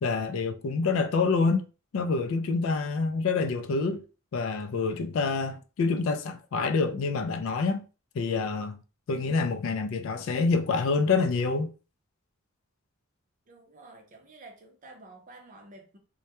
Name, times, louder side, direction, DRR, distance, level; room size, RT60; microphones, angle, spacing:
voice 1, 0.0-1.7 1.9-4.0 4.3-7.8 8.1-8.8 9.1-11.7, left 4 dB, 60° left, 0.3 m, -27 dB
voice 2, 13.5-16.0, right 2 dB, 35° right, 0.5 m, -50 dB
2.2 x 2.1 x 2.8 m
head